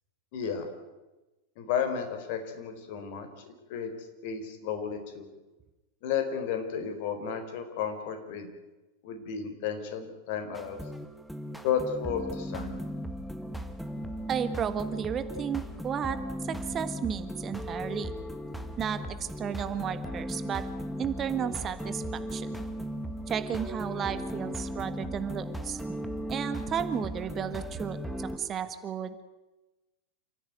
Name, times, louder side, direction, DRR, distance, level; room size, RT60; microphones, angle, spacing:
voice 1, 0.3-0.7 1.6-3.4 3.7-3.9 4.2-5.3 6.0-8.5 9.0-10.8 11.6-12.8, left 7 dB, 50° left, 7 dB, 4.2 m, -32 dB
sound 1, 10.5-28.4, equal, ahead, 1.8 m, -37 dB
voice 2, 14.3-16.2 16.4-18.1 18.8-20.6 21.0-22.5 23.3-25.8 26.3-29.2, right 8 dB, 25° right, 11 dB, 1.4 m, -33 dB
28.5 x 15.0 x 9.4 m, 1.1 s
figure-of-eight pair, 90°, 0 cm